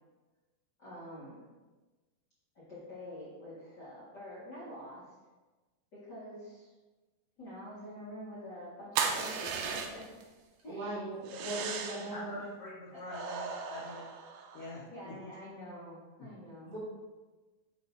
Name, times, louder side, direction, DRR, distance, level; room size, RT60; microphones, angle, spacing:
voice 1, 0.8-1.4 2.5-5.1 5.9-6.7 7.4-10.3 10.6-11.0 12.9-13.0 14.8-16.8, left 1 dB, 40° left, -10 dB, 1.6 m, -46 dB
sound 1, 9.0-10.2 11.3-12.2 13.1-14.8, right 6 dB, 80° right, 1.9 m, -36 dB
voice 2, 10.7-12.4 16.7-16.8, right 1 dB, 50° right, -9 dB, 3.0 m, -39 dB
voice 3, 11.3-11.6 12.1-14.1 14.5-15.3 16.2-16.3, left 2 dB, 85° left, -8 dB, 1.3 m, -45 dB
8.5 x 3.4 x 4.0 m, 1.2 s
omnidirectional pair, 4.3 m